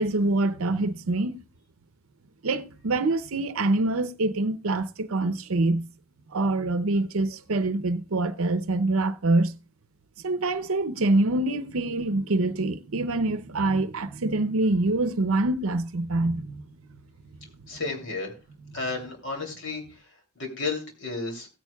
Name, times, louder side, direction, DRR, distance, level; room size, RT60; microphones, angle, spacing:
voice 1, 0.0-1.4 2.4-5.9 6.3-9.5 10.2-16.6, right 2 dB, 75° right, 0.7 m, -25 dB
voice 2, 17.7-18.3 18.7-19.8 20.4-21.5, left 3 dB, 55° left, 2.9 m, -32 dB
16.5 x 9.1 x 2.3 m
head